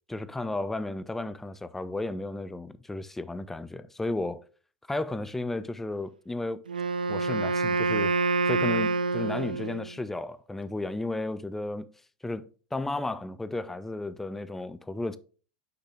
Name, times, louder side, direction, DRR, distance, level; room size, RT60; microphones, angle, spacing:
voice 1, 0.1-4.4 4.9-6.6 7.1-8.1 8.5-11.9 12.2-15.2, left 2 dB, 5° left, 0.4 m, -33 dB
Wind instrument woodwind instrument, 6.7-10.0, right 3 dB, 75° right, 0.4 m, -27 dB
5.8 x 5.5 x 3.3 m
figure-of-eight pair, 90°, 5 cm